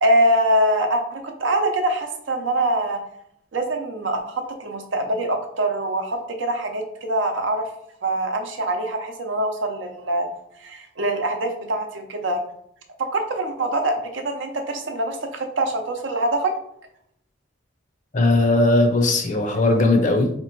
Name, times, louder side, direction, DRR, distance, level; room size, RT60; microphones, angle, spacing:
voice 1, 0.0-3.0 3.5-7.7 8.0-10.3 10.6-12.4 13.1-16.5, right 1 dB, 75° right, 4 dB, 0.7 m, -24 dB
voice 2, 18.1-20.3, left 2 dB, 40° left, 4 dB, 0.6 m, -18 dB
3.3 x 2.9 x 4.5 m, 0.73 s
head